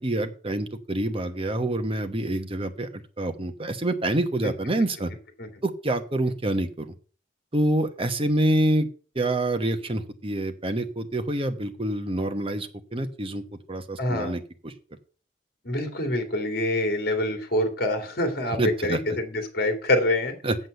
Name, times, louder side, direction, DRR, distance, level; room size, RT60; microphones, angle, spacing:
voice 1, 0.0-2.9 3.2-5.1 5.6-6.9 7.5-8.9 9.1-13.4 13.7-14.7 18.5-19.0 20.4-20.6, right 1 dB, 30° right, 8 dB, 1.1 m, -26 dB
voice 2, 14.0-14.3 15.6-20.3, left 1 dB, 55° left, 6 dB, 2.5 m, -26 dB
7.9 x 7.7 x 6.7 m, 0.39 s
head